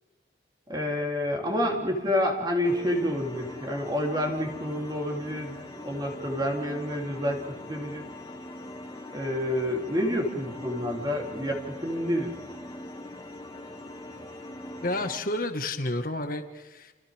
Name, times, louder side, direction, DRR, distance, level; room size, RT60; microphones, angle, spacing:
voice 1, 0.7-7.4 7.7-8.0 9.1-12.3, left 1 dB, 25° right, 0 dB, 3.5 m, -28 dB
sound 1, 2.6-15.2, left 1 dB, 20° left, 2.4 m, -41 dB
voice 2, 14.8-16.9, left 2 dB, 50° left, 6 dB, 1.9 m, -30 dB
29.5 x 29.5 x 3.7 m, 1.3 s
head